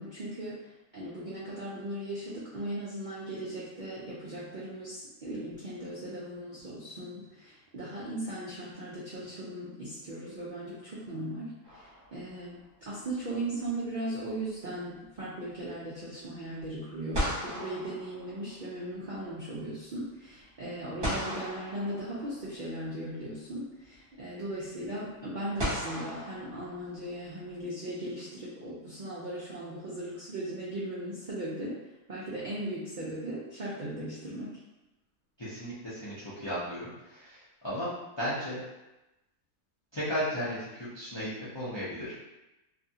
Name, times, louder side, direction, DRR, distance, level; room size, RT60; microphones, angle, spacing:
voice 1, 0.0-31.8 32.1-34.5, right 1 dB, 70° right, -7 dB, 0.4 m, -38 dB
sound 1, 11.6-12.5 16.6-16.7 17.1-18.9 21.0-22.6 23.9-24.0 25.6-27.2, equal, 35° right, 1.1 m, -36 dB
voice 2, 35.4-38.6 39.9-42.1, equal, 45° left, -10 dB, 0.3 m, -35 dB
2.6 x 2.4 x 2.7 m, 0.99 s
omnidirectional pair, 1.6 m